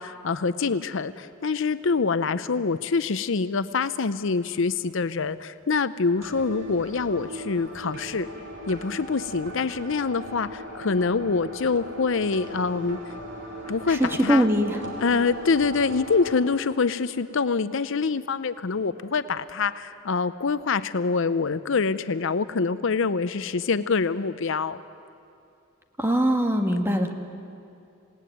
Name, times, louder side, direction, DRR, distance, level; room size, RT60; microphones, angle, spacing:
voice 1, 0.0-8.3 8.7-13.0 13.7-14.5 15.0-24.8, left 4 dB, 65° left, 13 dB, 0.6 m, -25 dB
sound 1, 6.2-16.3, right 1 dB, 60° right, 4.1 m, -38 dB
voice 2, 13.9-14.8 26.0-27.1, equal, 10° right, 4 dB, 1.7 m, -22 dB
28.0 x 18.0 x 9.3 m, 2.5 s
head